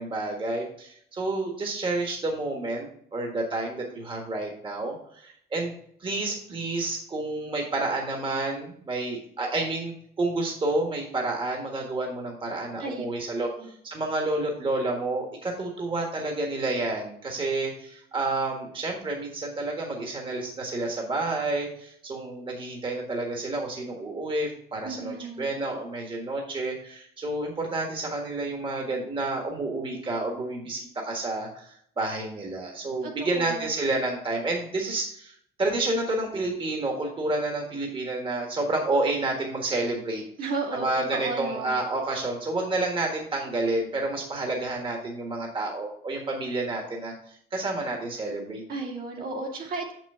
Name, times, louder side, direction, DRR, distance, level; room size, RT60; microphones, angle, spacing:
voice 1, 0.0-5.7 6.0-40.2 40.7-48.6, right 2 dB, 30° right, 1 dB, 1.5 m, -30 dB
voice 2, 24.8-25.5 33.0-33.7 40.4-41.7 48.7-49.9, right 3 dB, 60° right, 0 dB, 2.3 m, -34 dB
6.6 x 6.1 x 4.3 m, 0.66 s
cardioid pair, 110°, 17 cm